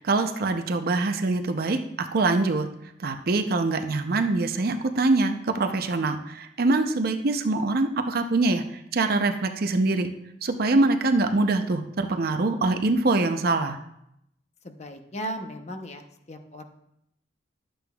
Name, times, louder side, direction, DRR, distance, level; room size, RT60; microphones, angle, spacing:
voice 1, 0.0-2.7 3.0-8.6 8.9-10.1 10.4-13.8, right 3 dB, 60° right, 7 dB, 0.6 m, -24 dB
voice 2, 14.6-16.6, equal, 40° left, 6 dB, 0.7 m, -36 dB
11.5 x 7.7 x 2.3 m, 0.79 s
head